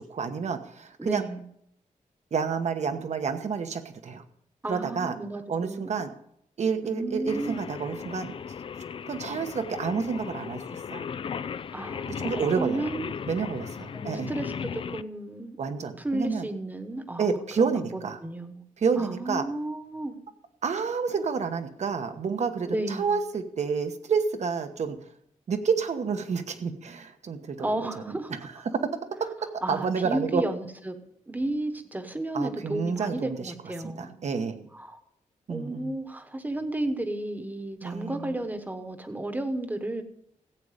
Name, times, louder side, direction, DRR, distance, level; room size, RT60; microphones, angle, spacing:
voice 1, 0.0-1.2 2.3-4.2 4.7-5.2 5.5-6.1 6.6-8.3 9.1-11.0 12.2-12.9 13.3-14.3 15.6-16.5 17.2-18.2 18.8-19.4 20.6-25.0 25.5-27.8 28.1-28.4 28.8-30.4 32.3-33.5 33.8-34.7 35.5-35.9 37.8-38.4, right 5 dB, 60° right, 8 dB, 1.1 m, -29 dB
voice 2, 1.0-1.4 4.6-6.0 6.8-7.7 11.7-13.1 13.9-15.6 16.0-18.6 19.0-20.1 22.7-23.2 27.6-28.3 29.6-31.0 31.3-34.2 34.7-35.0 35.5-40.0, right 1 dB, 15° right, 8 dB, 1.2 m, -33 dB
Singing, 7.3-15.0, left 7 dB, 40° left, 0.3 m, -36 dB
15.0 x 8.6 x 5.1 m, 0.73 s
wide cardioid pair, 155°, 13 cm